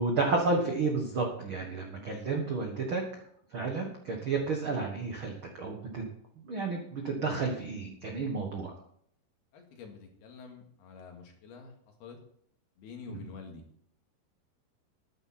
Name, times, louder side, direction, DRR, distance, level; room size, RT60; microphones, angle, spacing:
voice 1, 0.0-3.0 3.5-6.0 6.5-8.7 13.1-13.2, right 3 dB, 75° right, 2 dB, 1.1 m, -31 dB
voice 2, 9.5-11.7 12.0-12.2 12.8-13.6, left 5 dB, 70° left, 2 dB, 3.8 m, -47 dB
13.0 x 10.0 x 4.3 m, 0.66 s
omnidirectional pair, 4.7 m